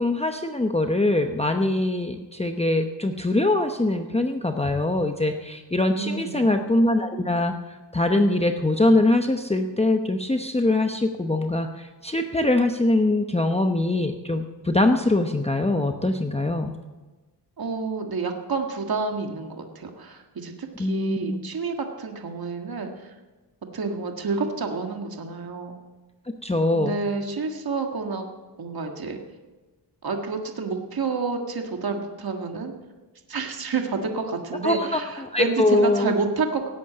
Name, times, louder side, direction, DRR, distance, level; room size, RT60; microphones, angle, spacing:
voice 1, 0.0-16.8 20.8-21.4 26.4-27.0 34.6-36.2, left 2 dB, 15° left, 5 dB, 0.9 m, -23 dB
voice 2, 5.9-6.4 17.6-20.5 20.8-23.1 23.7-25.8 26.7-28.3 28.6-29.2 30.0-32.7 33.3-36.7, right 4 dB, 55° right, 3 dB, 1.9 m, -29 dB
17.5 x 8.4 x 8.8 m, 1.2 s
cardioid pair, 80°, 44 cm